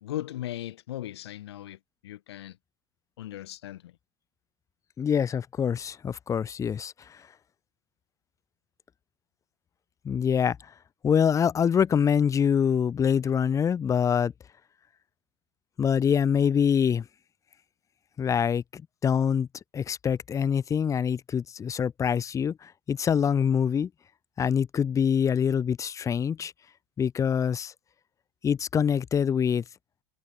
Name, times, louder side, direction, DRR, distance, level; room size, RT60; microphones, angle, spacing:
voice 1, 0.0-2.6 3.2-3.9, left 13 dB, 80° left, 1.2 m, -38 dB
voice 2, 5.0-7.2 10.0-10.6 11.0-14.3 15.8-17.1 18.2-19.5 19.7-23.9 24.4-26.5 27.0-27.7 28.4-29.6, left 7 dB, 25° left, 0.6 m, -25 dB
hypercardioid pair, 95°, 13 cm